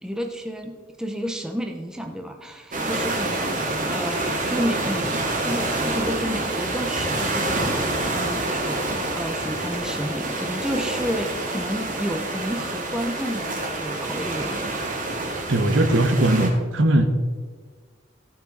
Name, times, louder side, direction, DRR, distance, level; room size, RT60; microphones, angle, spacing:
voice 1, 0.0-14.7, equal, 5° right, 3 dB, 0.7 m, -31 dB
sound 1, 2.7-16.5, right 2 dB, 40° right, 1.9 m, -27 dB
voice 2, 15.5-17.0, right 1 dB, 70° right, 7 dB, 1.0 m, -19 dB
14.5 x 6.0 x 4.3 m, 1.5 s
head